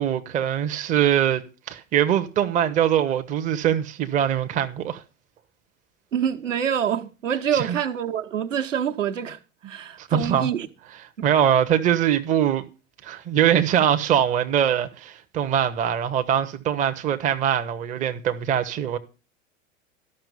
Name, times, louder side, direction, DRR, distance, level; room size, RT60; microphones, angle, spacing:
voice 1, 0.0-1.4 1.7-5.0 7.5-7.8 10.0-10.5 11.2-12.6 13.0-19.0, right 9 dB, 20° right, 0.7 m, -22 dB
voice 2, 6.1-9.4 9.6-10.7 11.2-11.3, right 8 dB, 70° right, 1.1 m, -26 dB
13.0 x 5.9 x 6.7 m
figure-of-eight pair, 85°, 39 cm